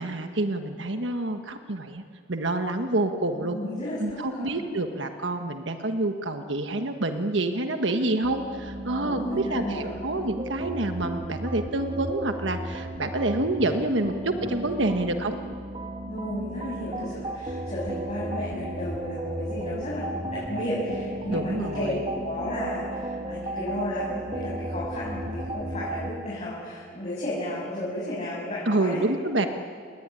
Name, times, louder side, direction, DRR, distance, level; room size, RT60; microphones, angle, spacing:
voice 1, 0.0-2.0 2.3-3.6 4.0-15.3 21.3-22.0 28.6-29.5, right 2 dB, 80° right, 6 dB, 1.4 m, -27 dB
voice 2, 3.4-4.6 9.0-10.0 16.1-21.9 22.2-29.0, left 1 dB, 40° left, -7 dB, 7.4 m, -33 dB
sound 1, 8.2-26.1, right 1 dB, 30° right, 2.5 m, -35 dB
29.5 x 20.5 x 9.9 m, 2.2 s
head